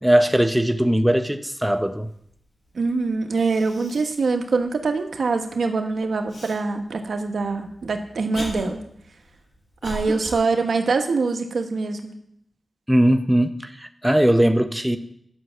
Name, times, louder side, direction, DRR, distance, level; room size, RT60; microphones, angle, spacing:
voice 1, 0.0-2.1 12.9-15.0, right 1 dB, 5° right, 7 dB, 0.7 m, -19 dB
voice 2, 2.7-8.8 9.8-12.1, right 4 dB, 75° right, 4 dB, 1.3 m, -24 dB
Cough, 2.9-3.0 3.3-4.2 4.7-4.8 6.3-6.6 7.4-10.4, left 1 dB, 60° left, 5.5 m, -36 dB
11.0 x 6.3 x 7.5 m, 0.71 s
wide cardioid pair, 90°, 0 cm